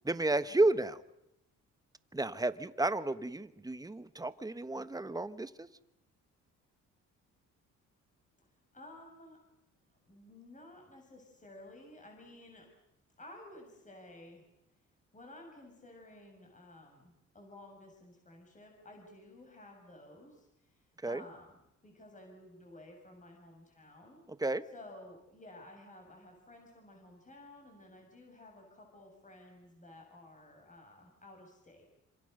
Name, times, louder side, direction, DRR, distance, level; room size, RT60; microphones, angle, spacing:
voice 1, 0.0-1.0 2.1-5.7 21.0-21.2 24.4-24.6, right 2 dB, 10° right, 13 dB, 1.3 m, -32 dB
voice 2, 8.7-9.4 9.9-12.7 13.2-14.4 15.1-24.2 24.7-31.9, left 1 dB, 25° left, 2 dB, 7.0 m, -54 dB
27.5 x 26.5 x 6.7 m, 0.84 s
cardioid pair, 90°, 30 cm